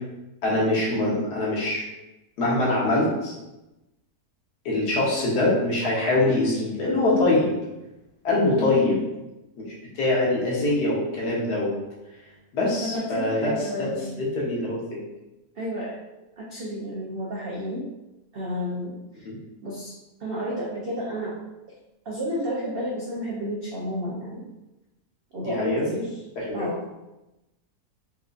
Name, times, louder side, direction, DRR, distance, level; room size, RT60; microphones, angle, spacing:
voice 1, 0.4-1.8 2.4-3.3 4.6-7.5 8.2-9.0 9.9-11.7 12.5-13.5 13.8-13.9 14.2-15.0 19.3-19.4 25.4-25.8 26.4-26.6, left 2 dB, 85° left, -5 dB, 1.6 m, -23 dB
voice 2, 8.6-9.0 12.6-14.2 15.6-16.0 16.4-17.9 18.3-19.3 19.6-21.4 22.1-24.4 25.3-26.2 26.5-26.8, equal, 75° right, -4 dB, 0.5 m, -31 dB
4.2 x 2.5 x 2.4 m, 0.99 s
omnidirectional pair, 1.7 m